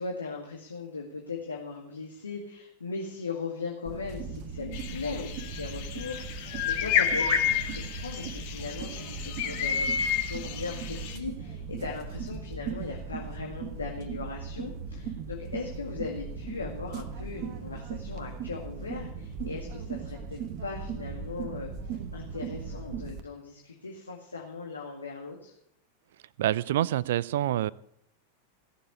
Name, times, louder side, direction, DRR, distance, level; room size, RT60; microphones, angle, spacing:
voice 1, 0.0-10.0 10.2-25.5, left 4 dB, 75° left, 0 dB, 2.2 m, -38 dB
sound 1, 3.9-23.2, right 5 dB, 40° right, 1.3 m, -38 dB
sound 2, 4.7-11.2, left 8 dB, 50° left, 2.1 m, -30 dB
voice 2, 26.4-27.7, right 13 dB, 55° right, 21 dB, 0.5 m, -26 dB
17.5 x 7.3 x 8.5 m, 0.72 s
figure-of-eight pair, 90°, 0 cm